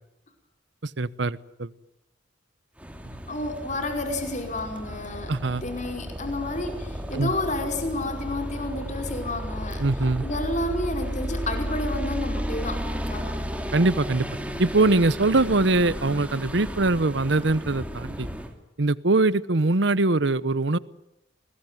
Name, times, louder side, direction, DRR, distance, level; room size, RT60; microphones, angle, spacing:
voice 1, 0.8-1.7 5.3-5.6 7.1-7.3 9.8-10.2 13.7-14.3 14.6-18.3 18.8-20.8, right 2 dB, 60° right, 18 dB, 0.9 m, -22 dB
sound 1, 2.8-18.5, equal, 5° right, 2.6 m, -33 dB
voice 2, 3.3-5.3 5.6-9.8 10.2-12.8 13.1-13.3, left 1 dB, 40° left, 5 dB, 5.1 m, -30 dB
29.5 x 21.0 x 9.4 m, 0.88 s
head